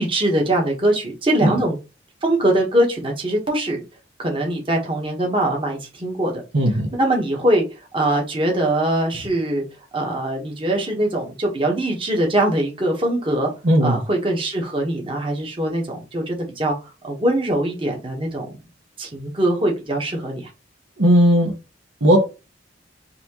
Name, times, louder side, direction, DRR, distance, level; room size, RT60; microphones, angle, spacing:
voice 1, 0.0-1.8 2.2-3.8 4.2-6.4 6.9-7.6 7.9-9.6 9.9-13.5 13.8-16.8 17.0-18.6 19.0-20.4, right 1 dB, 30° right, 1.1 m, -22 dB
voice 2, 6.5-6.9 13.6-14.0 21.0-21.5 22.0-22.3, equal, 90° right, 1.1 m, -16 dB
4.1 x 2.8 x 2.9 m
head